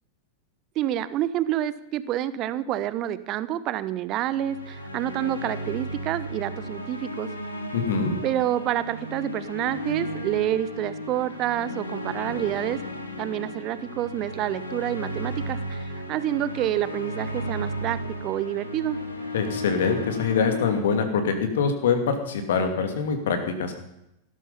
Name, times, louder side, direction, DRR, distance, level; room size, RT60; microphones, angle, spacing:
voice 1, 0.7-7.3 8.2-12.8 13.2-19.0, right 12 dB, 35° right, 15 dB, 1.0 m, -28 dB
sound 1, 4.3-20.8, equal, 80° left, 2.5 m, -34 dB
voice 2, 7.7-8.2 19.3-23.7, left 5 dB, 60° left, 6 dB, 2.6 m, -24 dB
17.0 x 13.0 x 5.6 m, 0.84 s
figure-of-eight pair, 90°, 0 cm